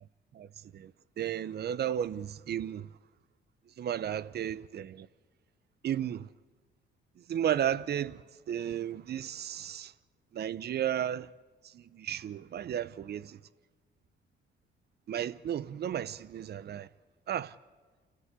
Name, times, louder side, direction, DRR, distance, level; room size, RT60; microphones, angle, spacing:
voice 1, 1.2-2.9 3.8-5.1 5.8-6.3 7.3-9.9 10.3-11.3 11.7-13.4 15.1-16.9 17.3-17.5, right 10 dB, 55° right, 0.7 m, -33 dB
29.0 x 13.0 x 8.2 m
cardioid pair, 90°, 20 cm